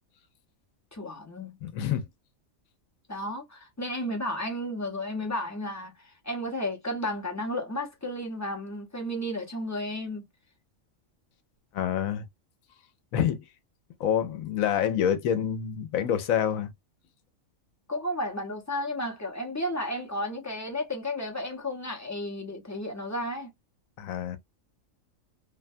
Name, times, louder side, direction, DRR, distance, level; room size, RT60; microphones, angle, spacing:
voice 1, 0.9-1.6 3.1-10.2 17.9-23.5, left 1 dB, 15° left, 0.6 m, -33 dB
voice 2, 1.6-2.1 11.7-12.2 13.1-13.4 14.0-16.7 24.0-24.4, left 9 dB, 85° left, 1.0 m, -27 dB
2.5 x 2.2 x 2.5 m
omnidirectional pair, 1.4 m